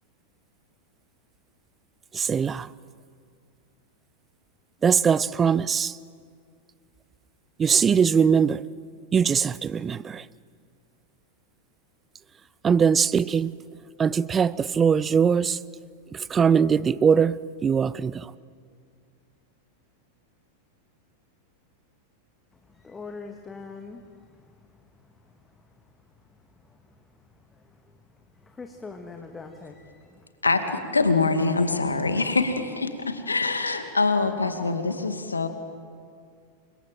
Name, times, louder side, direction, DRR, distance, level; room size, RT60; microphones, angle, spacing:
voice 1, 2.1-2.7 4.8-5.9 7.6-8.6 9.1-10.2 12.6-13.5 14.0-15.6 16.3-18.3, right 6 dB, 20° right, 0.6 m, -21 dB
voice 2, 22.8-24.0 28.6-29.8, left 4 dB, 15° left, 2.0 m, -40 dB
voice 3, 30.4-35.5, left 3 dB, 80° left, 2.3 m, -24 dB
29.5 x 25.5 x 7.6 m
figure-of-eight pair, 90°, 0 cm